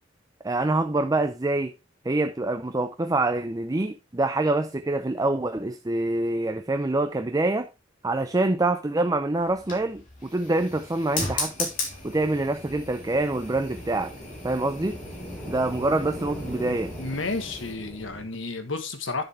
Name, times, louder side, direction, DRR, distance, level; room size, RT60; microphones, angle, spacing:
voice 1, 0.4-1.7 2.0-7.7 8.0-11.7 12.0-14.1 14.4-15.0 15.4-16.9, right 2 dB, 20° right, 0.5 m, -25 dB
sound 1, 9.4-17.7, left 3 dB, 45° left, 3.4 m, -37 dB
sound 2, 12.0-18.3, equal, 10° left, 3.5 m, -40 dB
voice 2, 17.0-19.2, left 3 dB, 75° left, 1.4 m, -31 dB
10.0 x 7.0 x 3.4 m
head